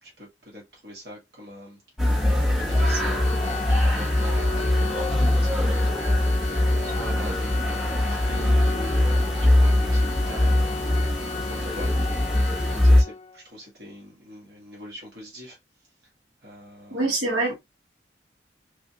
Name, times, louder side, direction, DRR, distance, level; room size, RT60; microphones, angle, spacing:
voice 1, 0.0-12.4 12.7-15.6 16.4-17.1, equal, 60° right, 1.4 m, -42 dB
sound 1, 2.0-13.0, left 1 dB, 5° right, 0.8 m, -22 dB
Organ, 2.7-13.4, left 4 dB, 35° left, 0.3 m, -35 dB
voice 2, 16.9-17.6, right 2 dB, 85° right, 1.6 m, -25 dB
3.5 x 2.4 x 2.7 m
head